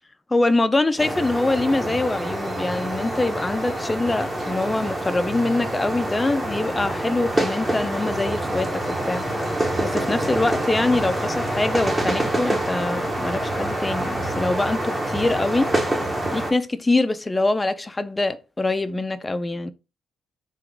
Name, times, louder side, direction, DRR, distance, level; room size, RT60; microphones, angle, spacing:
voice 1, 0.3-9.3 9.8-15.7 16.3-19.7, left 2 dB, 20° left, 0.4 m, -24 dB
sound 1, 1.0-16.5, right 1 dB, 20° right, 0.9 m, -26 dB
3.7 x 2.3 x 3.4 m
cardioid pair, 90°, 0 cm